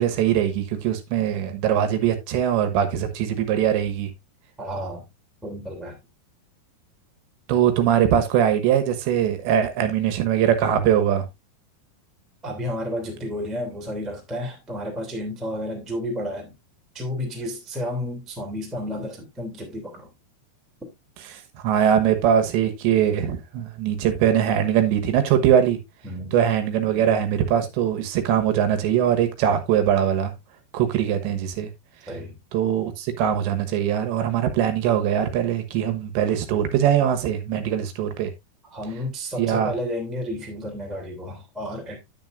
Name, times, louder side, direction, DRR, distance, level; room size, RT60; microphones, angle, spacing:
voice 1, 0.0-4.1 7.5-11.3 21.3-25.8 26.3-30.3 30.7-31.7 32.5-38.3 39.4-39.7, right 9 dB, 75° right, 3.4 m, -21 dB
voice 2, 4.6-5.1 5.4-6.0 12.4-16.5 16.9-20.1 26.0-26.3 32.1-32.4 38.7-42.0, left 1 dB, ahead, 1.3 m, -31 dB
9.8 x 9.3 x 2.5 m
omnidirectional pair, 5.3 m